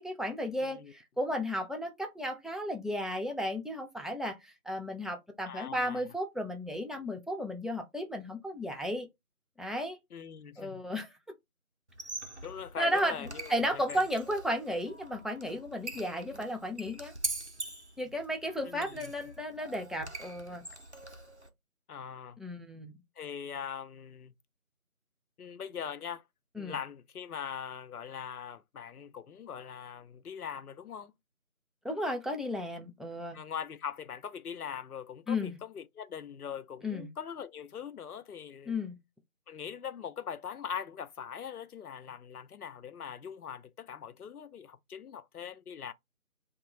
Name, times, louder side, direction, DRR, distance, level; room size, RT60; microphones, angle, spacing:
voice 1, 0.0-9.1 9.6-10.0 10.6-11.1 12.8-17.1 18.0-20.6 22.4-22.9 26.6-26.7 31.8-33.4 35.3-35.6 36.8-37.1 38.7-39.0, equal, ahead, 0.4 m, -34 dB
voice 2, 0.6-0.9 5.5-6.0 10.1-10.8 12.4-14.0 18.7-19.1 21.9-22.4 23.2-24.3 25.4-26.2 26.6-31.1 33.3-38.8 39.5-45.9, left 8 dB, 90° left, 0.5 m, -41 dB
Squeak, 11.9-21.5, right 2 dB, 50° right, 0.5 m, -43 dB
2.7 x 2.2 x 2.9 m
figure-of-eight pair, 180°, 43 cm